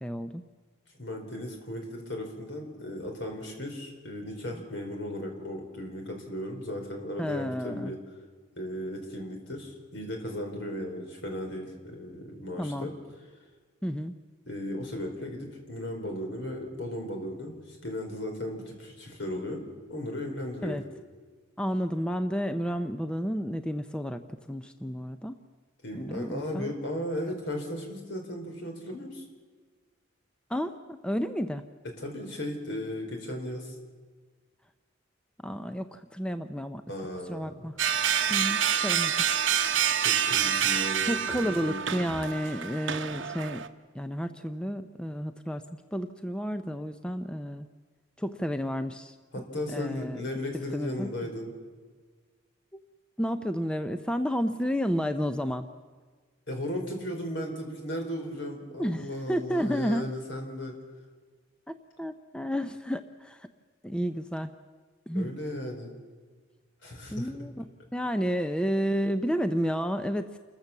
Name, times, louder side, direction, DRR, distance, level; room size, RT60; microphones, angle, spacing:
voice 1, 0.0-0.4 7.2-7.9 12.6-12.9 13.8-14.1 20.6-20.8 21.6-25.4 25.9-26.7 30.5-31.6 35.4-36.8 37.3-37.8 38.3-39.1 41.1-43.6 43.9-45.6 45.9-47.7 48.2-49.1 49.7-50.2 50.7-51.1 53.2-55.7 58.3-58.5 58.8-60.0 61.7-63.5 63.8-64.5 65.1-65.3 67.1-70.4, equal, 5° left, 9 dB, 0.6 m, -31 dB
voice 2, 1.0-8.0 8.6-12.9 14.5-19.6 19.9-20.8 25.8-29.2 32.0-33.7 36.9-37.8 40.0-42.0 49.3-51.5 56.5-60.8 65.1-65.9 66.8-67.3, left 1 dB, 65° left, 2 dB, 4.3 m, -36 dB
sound 1, 37.8-43.7, right 8 dB, 75° right, 0.9 m, -27 dB
29.0 x 14.5 x 7.2 m, 1.5 s
head